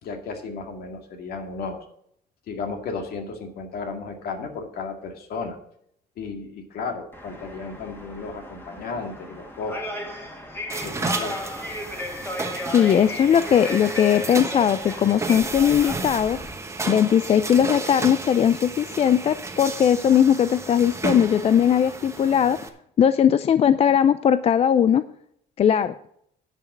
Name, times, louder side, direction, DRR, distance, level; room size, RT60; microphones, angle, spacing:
voice 1, 0.0-1.8 2.5-5.6 6.2-10.3 10.8-11.4, left 4 dB, 65° left, 4 dB, 2.1 m, -34 dB
sound 1, 7.1-16.5, left 1 dB, 15° left, 2.1 m, -35 dB
sound 2, 10.7-22.7, right 3 dB, 15° right, 1.1 m, -33 dB
voice 2, 12.7-16.4 16.9-22.6 23.0-25.0 25.6-25.9, left 9 dB, 35° left, 13 dB, 0.4 m, -19 dB
10.0 x 5.8 x 7.4 m, 0.70 s
cardioid pair, 110°, 17 cm